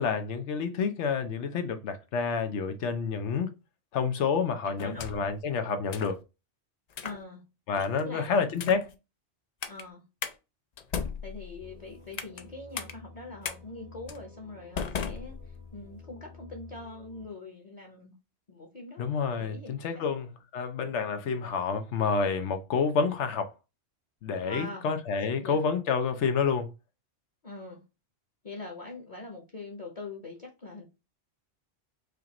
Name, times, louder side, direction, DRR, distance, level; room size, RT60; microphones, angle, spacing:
voice 1, 0.0-3.5 3.9-6.2 7.7-8.9 19.0-23.5 24.2-26.7, left 5 dB, 85° left, 1.0 m, -29 dB
voice 2, 4.6-5.3 7.0-7.4 8.0-8.9 9.7-10.0 11.2-18.1 18.5-19.0 19.4-20.1 24.4-24.9 25.2-25.6 27.4-27.8 28.4-30.8, left 2 dB, 40° left, 0.9 m, -43 dB
sound 1, 4.8-5.4 5.9-6.2 6.9-7.2 7.8-8.1 8.5-8.9 9.6-9.8 10.2-10.4 10.8-12.4 12.8-12.9 13.4-13.6 14.1-14.2 14.8-15.8, left 6 dB, 55° left, 0.4 m, -36 dB
sound 2, 11.6-17.2, left 3 dB, 20° right, 0.7 m, -51 dB
4.9 x 2.5 x 2.9 m
omnidirectional pair, 1.2 m